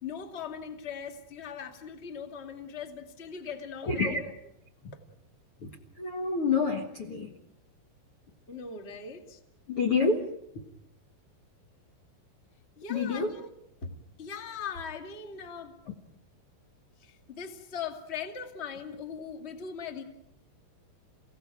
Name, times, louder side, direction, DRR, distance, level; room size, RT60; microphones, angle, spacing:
voice 1, 0.0-4.3 8.5-9.4 12.8-13.5 13.8-15.8 17.0-20.0, left 6 dB, 40° left, 6 dB, 0.9 m, -40 dB
voice 2, 3.9-4.2 5.6-5.7 6.0-7.3 9.7-10.2 12.9-13.3, left 4 dB, 80° left, 6 dB, 1.2 m, -27 dB
30.0 x 17.5 x 9.1 m, 0.79 s
omnidirectional pair, 5.4 m